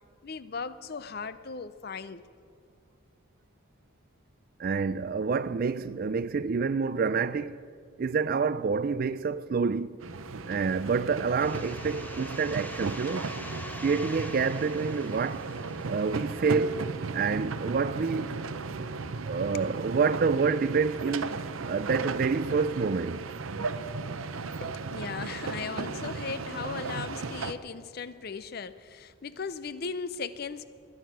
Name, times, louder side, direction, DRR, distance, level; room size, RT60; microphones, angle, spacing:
voice 1, 0.2-2.2 19.5-19.7 24.6-30.6, left 5 dB, 50° left, 0.5 m, -37 dB
voice 2, 4.6-7.6 8.0-10.0 10.5-13.3 13.8-15.5 15.9-18.4 19.3-23.3, right 5 dB, 45° right, 0.3 m, -28 dB
sound 1, 10.0-27.5, right 4 dB, 75° right, 0.7 m, -36 dB
sound 2, 11.4-16.9, left 1 dB, 10° left, 0.7 m, -45 dB
21.5 x 9.7 x 6.0 m
head